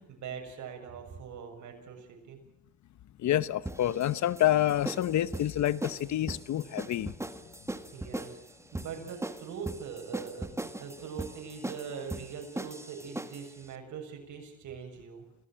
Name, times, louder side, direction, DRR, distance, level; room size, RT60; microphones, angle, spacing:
voice 1, 0.0-2.4 7.9-8.4 8.7-15.2, right 6 dB, 70° right, 6.7 m, -42 dB
voice 2, 3.2-7.1, left 12 dB, 70° left, 1.0 m, -28 dB
sound 1, 3.6-13.5, right 1 dB, 10° right, 1.7 m, -39 dB
27.5 x 18.5 x 7.5 m
cardioid pair, 90°, 30 cm